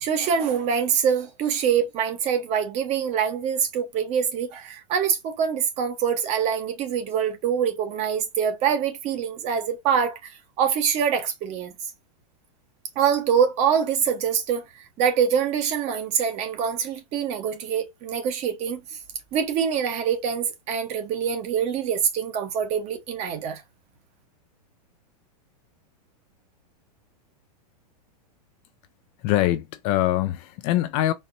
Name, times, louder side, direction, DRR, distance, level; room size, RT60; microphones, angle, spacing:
voice 1, 0.0-10.3 10.6-11.7 13.0-14.6 15.0-18.8 19.3-23.6, right 7 dB, 35° right, 1.0 m, -24 dB
voice 2, 29.2-31.1, left 14 dB, 35° left, 0.4 m, -23 dB
4.3 x 2.8 x 2.6 m
supercardioid pair, 145°, 21 cm